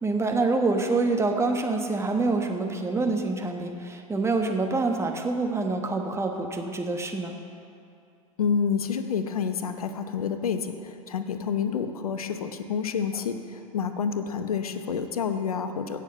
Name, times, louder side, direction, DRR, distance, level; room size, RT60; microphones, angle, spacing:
voice 1, 0.0-7.4, right 3 dB, 15° right, 3 dB, 1.3 m, -26 dB
voice 2, 8.4-16.0, left 6 dB, 80° left, 8 dB, 0.8 m, -28 dB
16.5 x 6.6 x 5.5 m, 2.5 s
figure-of-eight pair, 85°, 18 cm